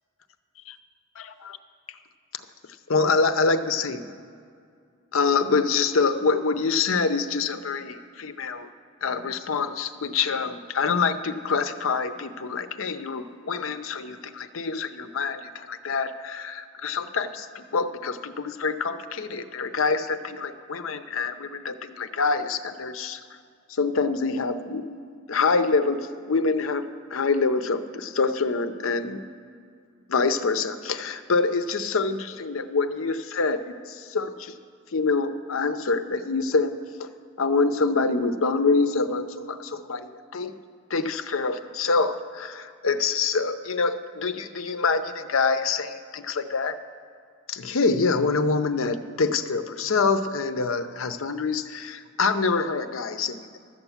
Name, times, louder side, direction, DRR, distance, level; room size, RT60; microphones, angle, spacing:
voice 1, 2.9-4.1 5.1-8.7 9.0-23.2 23.7-25.0 25.3-26.8 27.1-29.2 30.1-34.6 34.9-36.7 37.0-37.1 37.4-40.5 40.9-46.8 47.5-53.6, left 4 dB, 70° left, 10 dB, 0.7 m, -26 dB
12.5 x 8.0 x 7.2 m, 2.3 s
head